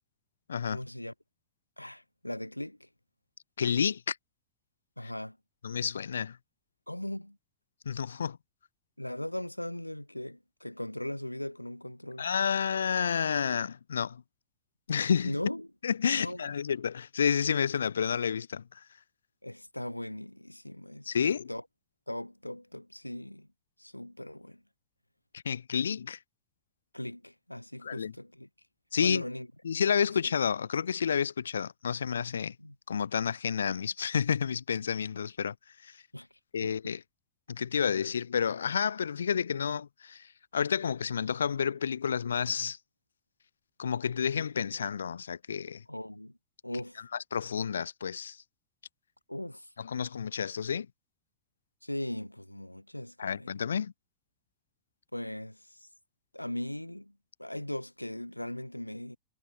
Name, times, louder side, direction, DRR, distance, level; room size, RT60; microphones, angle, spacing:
voice 1, 0.7-1.1 1.8-2.9 5.0-5.4 6.9-7.4 9.0-12.3 15.2-15.7 16.1-16.5 19.4-21.2 21.5-21.6 22.1-23.5 23.8-24.6 26.9-28.5 29.0-29.5 30.2-30.3 32.6-32.7 36.1-36.3 36.6-37.0 45.9-46.4 46.6-47.0 49.3-49.7 51.8-53.6 55.1-55.9 56.3-59.2, left 1 dB, 85° left, 7.9 m, -39 dB
voice 2, 3.6-4.2 5.6-6.4 7.8-8.4 12.2-14.2 14.9-15.3 15.8-18.8 21.1-21.5 25.3-26.2 27.8-28.1 28.9-29.2 29.6-32.5 32.9-35.5 35.8-36.0 36.5-37.0 37.5-42.8 43.8-45.8 47.3-48.4 49.8-50.9 53.2-53.9, left 7 dB, 70° left, 2.9 m, -30 dB
figure-of-eight pair, 90°, 0 cm